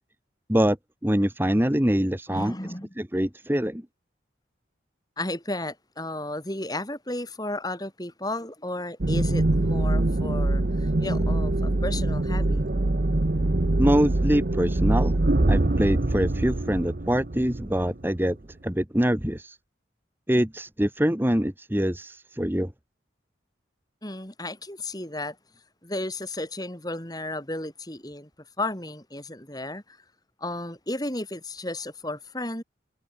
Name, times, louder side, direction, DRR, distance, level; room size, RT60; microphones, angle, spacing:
voice 1, 1.0-2.5 3.0-3.8 13.8-15.2 15.5-18.4 18.6-19.6 20.3-22.7, equal, 10° right, 1.3 m, -24 dB
voice 2, 2.3-2.9 5.2-12.6 24.0-25.4 25.8-28.3 28.6-30.0 30.4-32.6, left 1 dB, 20° left, 6.0 m, -33 dB
sound 1, 9.0-18.3, right 2 dB, 50° right, 0.9 m, -24 dB
head